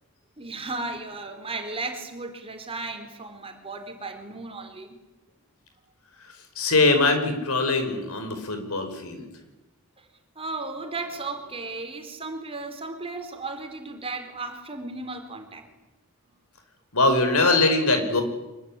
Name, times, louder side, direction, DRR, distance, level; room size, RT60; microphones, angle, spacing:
voice 1, 0.4-5.0 10.0-10.1 10.4-15.7, right 3 dB, 25° right, 5 dB, 4.1 m, -35 dB
voice 2, 6.6-9.3 16.9-18.2, left 2 dB, 75° left, 7 dB, 5.3 m, -22 dB
25.0 x 22.0 x 10.0 m, 1.0 s
head